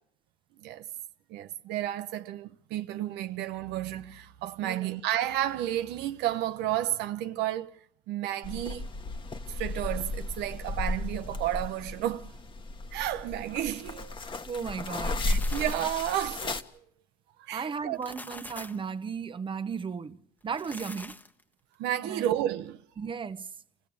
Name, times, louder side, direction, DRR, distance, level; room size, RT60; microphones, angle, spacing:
voice 1, 1.3-8.9 9.5-12.4 12.9-14.2 15.3-16.6 17.4-18.0 21.8-22.8, right 12 dB, 90° right, 0.8 m, -32 dB
voice 2, 4.6-4.9 14.5-15.5 17.5-20.2 20.4-21.2 22.0-22.3 23.0-23.5, right 6 dB, 30° right, 1.0 m, -35 dB
sound 1, 8.4-16.6, left 2 dB, 30° left, 1.3 m, -34 dB
sound 2, 15.1-16.3 17.8-18.9 20.4-21.4, left 1 dB, 10° left, 1.2 m, -45 dB
26.5 x 15.5 x 8.6 m
cardioid pair, 110°, 17 cm